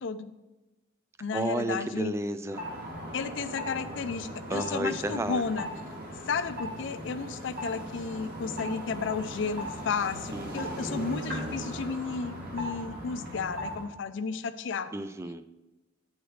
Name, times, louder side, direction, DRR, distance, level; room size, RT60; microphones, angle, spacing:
voice 1, 0.0-0.3 1.2-2.1 3.1-5.7 6.3-14.9, left 5 dB, 65° left, 11 dB, 0.4 m, -33 dB
voice 2, 1.3-2.6 4.5-5.4 10.3-10.8 14.9-15.4, right 1 dB, 15° right, 11 dB, 0.3 m, -32 dB
sound 1, 2.5-13.9, equal, 50° right, 2.0 m, -38 dB
8.9 x 6.3 x 3.2 m, 1.1 s
head